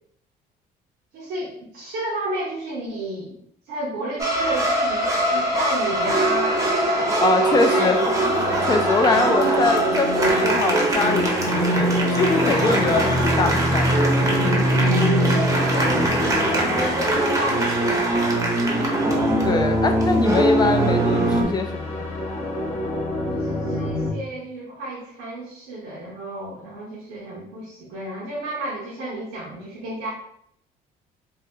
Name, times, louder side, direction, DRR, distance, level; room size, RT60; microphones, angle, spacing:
voice 1, 1.1-3.3 3.7-6.6 7.3-8.2 9.0-9.6 14.7-18.5 23.3-30.1, right 1 dB, 85° right, -6 dB, 0.9 m, -31 dB
sound 1, 4.2-21.4, right 1 dB, 20° right, 0.7 m, -22 dB
voice 2, 7.2-8.0 8.7-13.9 19.4-22.1, left 3 dB, 25° left, 6 dB, 0.4 m, -23 dB
sound 2, 8.1-18.3 19.3-24.1, equal, 40° left, 0.9 m, -27 dB
2.7 x 2.1 x 3.4 m, 0.71 s
cardioid pair, 110°, 17 cm